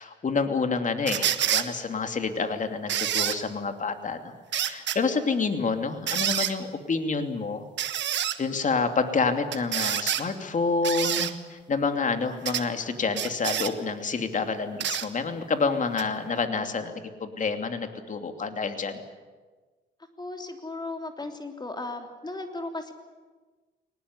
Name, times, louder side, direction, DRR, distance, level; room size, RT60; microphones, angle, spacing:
voice 1, 0.0-7.6 8.1-16.9 17.2-19.0, left 4 dB, 40° left, 7 dB, 2.8 m, -28 dB
sound 1, 1.1-1.7 2.9-3.4 4.5-5.0 6.1-6.5 7.8-8.4 9.5-10.2 10.8-11.3 12.5-12.7 13.1-13.7 14.8-15.1 16.0-16.1, right 10 dB, 65° right, 1.5 m, -27 dB
voice 2, 20.2-22.9, left 2 dB, 20° left, 5 dB, 3.2 m, -36 dB
22.5 x 19.5 x 9.7 m, 1.3 s
cardioid pair, 90°, 20 cm